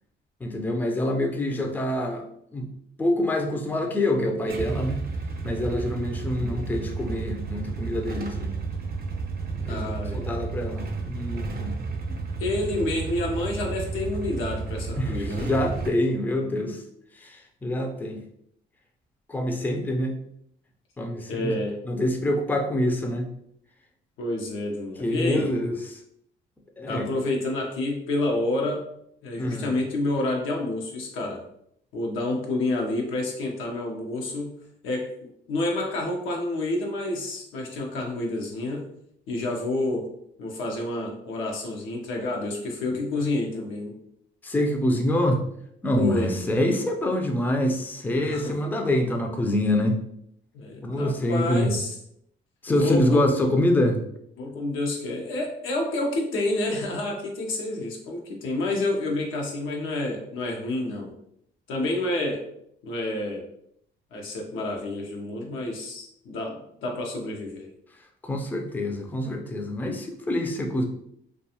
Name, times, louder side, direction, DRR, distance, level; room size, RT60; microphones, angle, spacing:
voice 1, 0.4-2.3 2.5-2.7 3.0-5.0 5.4-8.5 9.5-11.8 15.0-16.8 17.1-18.2 19.3-20.2 21.0-21.5 21.8-23.3 25.0-26.0 26.8-27.1 29.4-29.7 44.4-45.4 45.8-50.0 50.8-51.7 52.6-54.0 68.2-70.8, left 1 dB, 10° left, 3 dB, 0.4 m, -26 dB
Motorcycle / Engine starting / Idling, 4.5-15.9, right 4 dB, 50° right, 0.5 m, -32 dB
voice 2, 9.7-10.3 12.4-15.5 21.3-21.8 24.2-25.5 26.8-28.8 29.2-31.4 31.9-34.5 34.8-38.8 39.3-40.1 40.4-43.9 45.9-46.8 48.2-48.5 50.5-51.9 52.7-53.2 54.4-61.1 61.7-62.4 62.8-63.4 64.1-67.7, left 2 dB, 90° left, 0 dB, 0.7 m, -29 dB
2.4 x 2.3 x 2.8 m, 0.72 s
cardioid pair, 90°, 20 cm